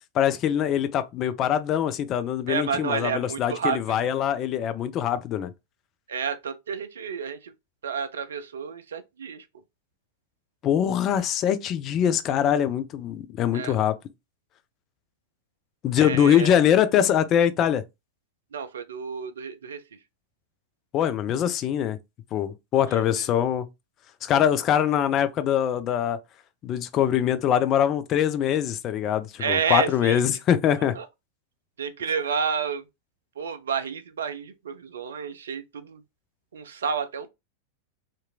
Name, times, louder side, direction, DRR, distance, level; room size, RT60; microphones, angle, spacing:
voice 1, 0.1-5.5 10.6-13.9 15.8-17.8 20.9-22.0 22.3-23.7 24.2-26.2 26.6-30.9, left 9 dB, 35° left, 0.4 m, -23 dB
voice 2, 2.5-3.8 6.1-7.5 7.8-9.5 13.5-13.8 16.0-16.6 18.5-19.8 22.9-23.3 29.4-30.2 30.9-31.1 31.8-32.8 33.4-36.0 36.5-37.3, right 6 dB, 65° right, 0.4 m, -30 dB
2.8 x 2.5 x 2.3 m
figure-of-eight pair, 90°, 0 cm